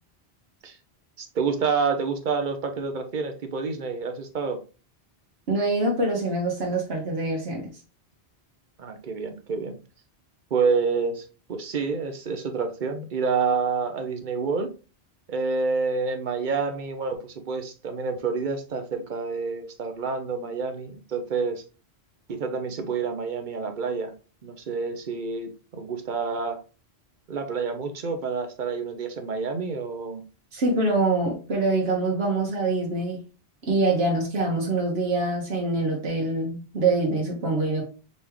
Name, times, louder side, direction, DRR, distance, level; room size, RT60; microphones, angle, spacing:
voice 1, 1.2-4.6 8.8-9.8 10.5-14.7 15.3-21.6 22.3-24.1 24.4-26.6 27.3-30.2, right 5 dB, 55° right, 0.8 m, -28 dB
voice 2, 5.5-7.7 30.5-33.2 33.7-37.8, right 2 dB, 70° right, 1.3 m, -25 dB
4.0 x 3.5 x 3.1 m
omnidirectional pair, 1.1 m